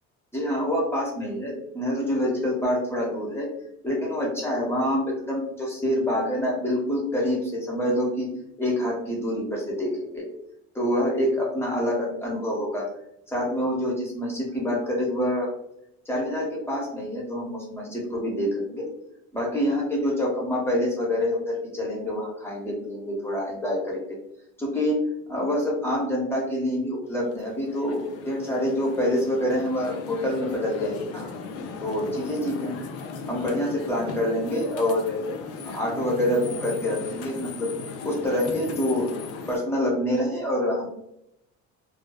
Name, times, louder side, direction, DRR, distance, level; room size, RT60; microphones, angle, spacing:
voice 1, 0.3-3.5 3.8-8.3 8.6-10.2 10.7-12.9 13.3-15.5 16.1-18.9 19.3-24.0 24.6-31.3 31.8-32.8 33.3-35.2 35.6-37.7 38.0-39.1 39.5-40.9, left 1 dB, 10° left, -3 dB, 0.8 m, -26 dB
sound 1, 27.1-39.6, left 4 dB, 55° left, 0.4 m, -37 dB
2.5 x 2.2 x 2.2 m, 0.79 s
cardioid pair, 135°, 29 cm